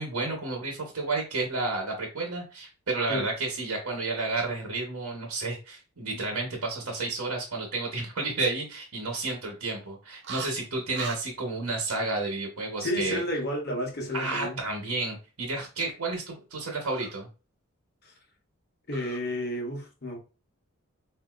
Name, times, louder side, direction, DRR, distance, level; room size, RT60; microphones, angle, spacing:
voice 1, 0.0-13.2 14.1-17.3, right 3 dB, 75° right, 1.0 m, -31 dB
sound 1, 10.2-10.5 10.9-11.2 14.1-14.4 16.8-17.1 18.9-19.2, right 5 dB, 50° right, 0.5 m, -39 dB
voice 2, 12.8-14.6 18.0-18.1 18.9-20.2, left 1 dB, 45° left, 0.9 m, -31 dB
4.4 x 2.7 x 2.4 m
head